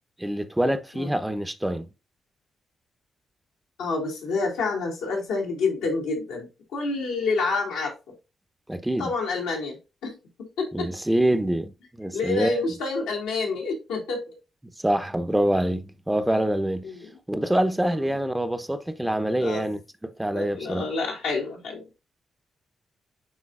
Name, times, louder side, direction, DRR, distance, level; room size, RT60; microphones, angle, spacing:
voice 1, 0.2-1.9 8.7-9.1 10.7-12.6 14.8-16.9 17.3-20.9, right 1 dB, 10° right, 0.9 m, -25 dB
voice 2, 3.8-6.5 6.7-7.9 9.0-9.8 10.0-10.1 10.6-10.9 12.1-14.2 16.8-17.0 19.4-19.6 20.3-21.8, left 3 dB, 85° left, 2.4 m, -28 dB
9.9 x 3.8 x 2.5 m
hypercardioid pair, 40°, 0 cm